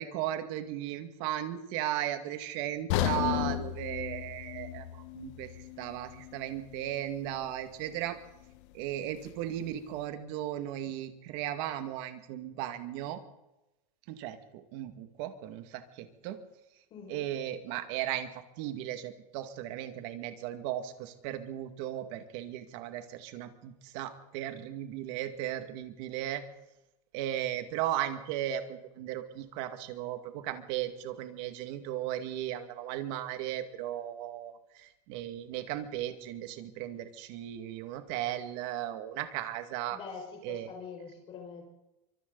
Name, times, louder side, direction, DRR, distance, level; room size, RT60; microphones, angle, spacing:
voice 1, 0.0-8.2 8.7-13.2 14.1-16.4 17.1-18.3 18.6-26.4 27.1-40.0 40.4-40.7, right 12 dB, 50° right, 8 dB, 2.1 m, -36 dB
sound 1, 2.9-7.0 7.3-7.5 8.1-8.2, left 13 dB, 50° left, 1.3 m, -34 dB
voice 2, 16.9-17.3 39.9-41.6, left 5 dB, 30° left, 1 dB, 5.7 m, -44 dB
26.5 x 25.0 x 4.0 m, 0.96 s
supercardioid pair, 170°, 20 cm